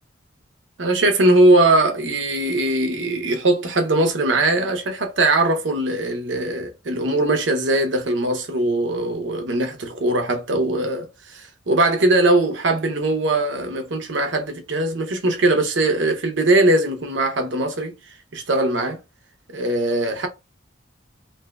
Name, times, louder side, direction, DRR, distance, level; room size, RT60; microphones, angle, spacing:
voice 1, 0.8-17.9 18.3-19.0 19.5-20.3, right 2 dB, 65° right, 0.7 m, -20 dB
3.4 x 2.6 x 2.3 m
head